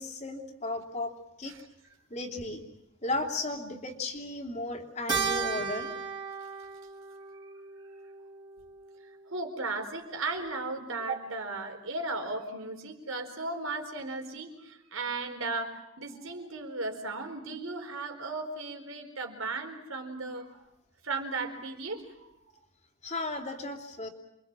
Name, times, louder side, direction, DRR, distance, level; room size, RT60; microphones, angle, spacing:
voice 1, 0.0-1.5 2.1-2.6 3.0-5.9 23.0-24.1, left 2 dB, 30° left, 2 dB, 3.1 m, -35 dB
Keyboard (musical), 5.1-9.7, right 5 dB, 20° right, 3.3 m, -36 dB
voice 2, 9.3-20.6 21.0-22.3, right 3 dB, 70° right, 4 dB, 4.4 m, -36 dB
28.5 x 24.0 x 7.5 m, 0.87 s
head